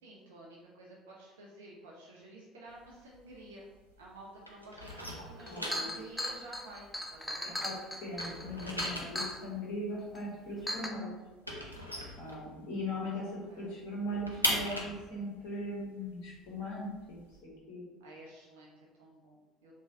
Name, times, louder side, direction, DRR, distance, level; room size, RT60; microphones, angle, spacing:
voice 1, 0.0-3.7 4.0-7.6 13.0-13.8 18.0-19.7, right 1 dB, 70° right, -3 dB, 0.4 m, -52 dB
sound 1, 2.7-4.1 4.4-7.6 7.9-12.9 13.3-13.4 13.7-17.4, equal, 90° left, 0.3 m, -39 dB
Chink clink, 5.0-5.1 5.4-9.4 10.1-10.2 10.7-10.9, left 1 dB, 5° left, 0.3 m, -37 dB
voice 2, 5.5-5.9 7.6-7.7 8.0-11.1 12.2-17.4 17.7-17.9, left 1 dB, 60° left, -5 dB, 0.8 m, -39 dB
3.1 x 2.2 x 2.6 m, 1.2 s
figure-of-eight pair, 60°, 0 cm